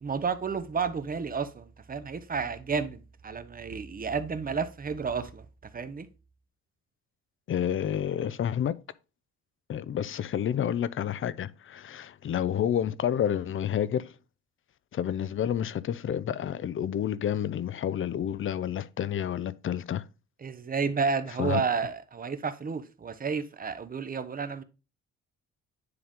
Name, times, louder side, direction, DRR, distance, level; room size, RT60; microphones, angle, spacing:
voice 1, 0.0-5.4 5.7-6.1 20.4-24.6, right 5 dB, 30° right, 0.7 m, -31 dB
voice 2, 7.5-8.8 9.7-14.2 14.9-20.1 21.4-21.6, left 9 dB, 45° left, 0.5 m, -29 dB
9.6 x 3.6 x 3.6 m
cardioid pair, 90°, 30 cm